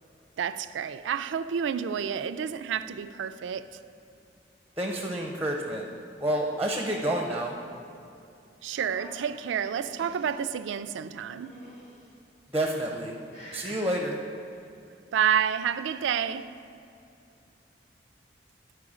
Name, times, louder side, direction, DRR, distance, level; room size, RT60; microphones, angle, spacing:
voice 1, 0.4-3.8 8.1-8.2 8.6-11.6 15.1-16.5, right 8 dB, 80° right, 0.3 m, -29 dB
voice 2, 4.8-5.9 6.2-7.5 12.5-13.2 13.5-14.2, right 1 dB, 10° right, 0.6 m, -29 dB
sound 1, 8.7-10.4 11.2-12.1 12.7-13.1 13.3-13.9 15.2-16.0, left 1 dB, 40° left, 1.9 m, -48 dB
12.0 x 4.6 x 4.9 m
head